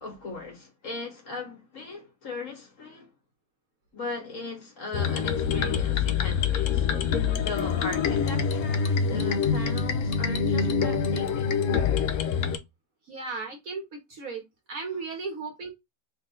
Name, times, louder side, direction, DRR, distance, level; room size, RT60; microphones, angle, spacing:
voice 1, 0.0-3.1 3.9-6.9 7.4-11.6, left 3 dB, 45° left, 1.5 m, -38 dB
sound 1, 4.9-12.6, left 6 dB, 80° left, 0.7 m, -25 dB
voice 2, 13.1-14.4 14.7-15.7, right 4 dB, 55° right, 1.2 m, -35 dB
3.6 x 2.6 x 3.7 m
omnidirectional pair, 2.0 m